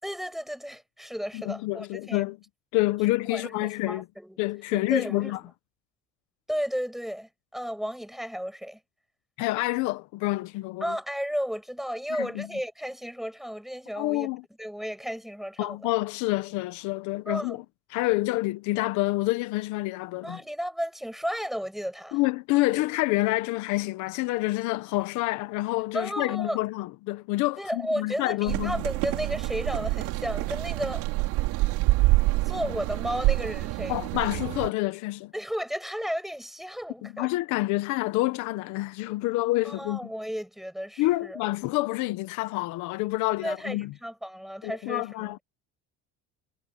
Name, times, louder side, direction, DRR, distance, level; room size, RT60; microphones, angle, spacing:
voice 1, 0.0-2.3 3.3-4.4 4.7-5.4 6.5-8.8 10.8-14.3 14.6-15.9 17.3-17.6 20.2-22.2 25.9-26.6 27.6-31.0 32.4-34.0 35.3-37.3 39.6-41.4 43.4-45.3, equal, ahead, 6.1 m, -33 dB
voice 2, 1.3-2.4 2.7-4.0 4.4-5.4 9.4-11.0 12.1-12.5 14.0-14.4 15.6-17.6 17.9-20.4 22.1-28.8 33.9-35.3 37.0-40.1 41.0-43.9 44.6-45.4, left 19 dB, 80° left, 1.2 m, -28 dB
sound 1, 28.5-34.7, right 21 dB, 85° right, 4.6 m, -26 dB
cardioid pair, 135°, 29 cm